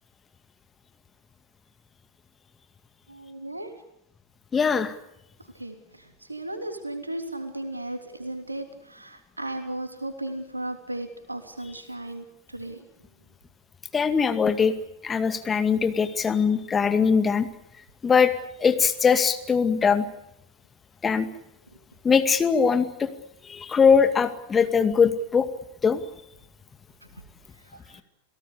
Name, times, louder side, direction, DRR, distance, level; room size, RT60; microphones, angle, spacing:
voice 1, 3.1-3.7 5.5-12.8 27.7-28.0, right 1 dB, 85° right, 7 dB, 3.2 m, -36 dB
voice 2, 4.5-4.9 13.9-14.7 15.0-17.5 18.0-18.3 18.6-20.0 21.0-21.3 22.0-23.1 23.5-25.5 25.8-26.0, left 6 dB, 20° left, 9 dB, 2.2 m, -21 dB
29.0 x 18.0 x 8.4 m, 0.81 s
figure-of-eight pair, 90°, 0 cm